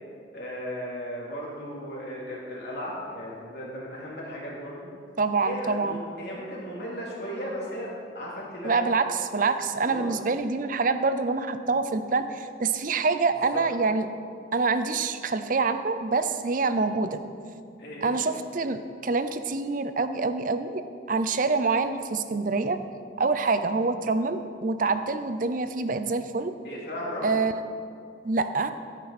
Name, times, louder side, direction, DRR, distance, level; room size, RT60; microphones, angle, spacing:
voice 1, 0.3-4.9 5.4-8.8 9.8-10.1 13.5-13.6 16.8-16.9 17.8-18.1 26.6-27.4, equal, 60° left, -5 dB, 3.2 m, -36 dB
voice 2, 5.2-6.0 8.6-14.1 14.5-17.2 18.0-20.8 21.1-22.8 23.2-26.5 27.2-27.5 28.2-28.7, right 4 dB, 50° right, 10 dB, 0.6 m, -26 dB
14.5 x 9.0 x 4.3 m, 2.2 s
head